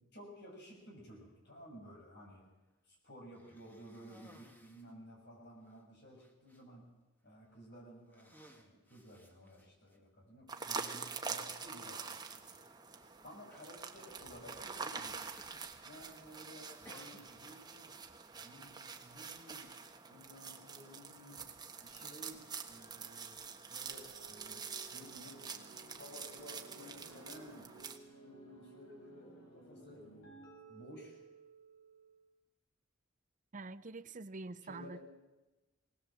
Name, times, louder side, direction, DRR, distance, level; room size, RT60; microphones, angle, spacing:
voice 1, 0.1-2.5 2.9-6.9 7.2-12.2 12.5-12.6 13.2-15.4 15.8-18.0 18.4-19.7 20.1-21.5 21.8-24.7 24.9-25.4 25.9-27.7 28.2-30.1 30.7-31.2 34.6-35.0, equal, 60° left, 1 dB, 6.6 m, -55 dB
Cough, 3.3-5.0 5.7-5.8 6.2-6.6 7.4-7.6 8.0-10.0 10.9-11.0 12.8-13.1 13.5-13.8 15.0-15.6 15.9-16.3 16.9-17.6, equal, 10° left, 2.0 m, -61 dB
sound 1, 10.5-28.0, right 5 dB, 20° right, 1.4 m, -46 dB
sound 2, 23.8-32.3, right 2 dB, 85° left, 5.1 m, -57 dB
voice 2, 33.5-35.0, right 3 dB, 40° right, 14 dB, 0.7 m, -46 dB
19.5 x 19.0 x 7.5 m, 1.1 s
head